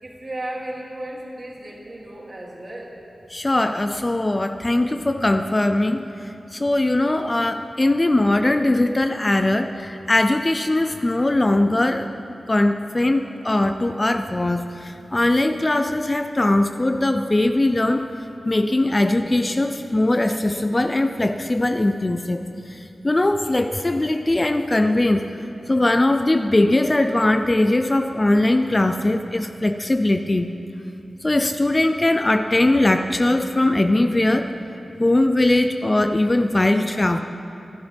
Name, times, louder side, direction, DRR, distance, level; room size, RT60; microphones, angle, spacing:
voice 1, 0.0-3.0, right 1 dB, 40° right, -3 dB, 2.9 m, -34 dB
voice 2, 3.3-12.1 12.5-18.1 18.4-25.3 25.7-30.5 31.2-34.5 35.0-37.2, left 1 dB, 25° left, 7 dB, 0.5 m, -20 dB
24.5 x 12.5 x 3.5 m, 2.7 s
wide cardioid pair, 85°, 0 cm